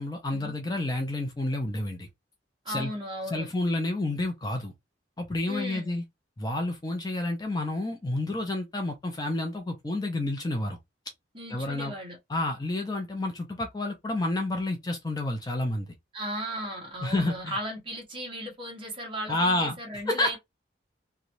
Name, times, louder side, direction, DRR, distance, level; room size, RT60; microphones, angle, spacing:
voice 1, 0.0-2.1 2.7-2.9 3.3-4.7 5.2-6.0 6.4-10.8 11.5-11.9 12.3-15.9 17.0-17.6 19.3-19.8 20.1-20.4, left 2 dB, 20° left, 0.5 m, -29 dB
voice 2, 2.6-3.5 5.5-6.0 11.3-12.2 16.1-20.4, equal, 25° right, 0.9 m, -36 dB
3.0 x 2.2 x 2.5 m
head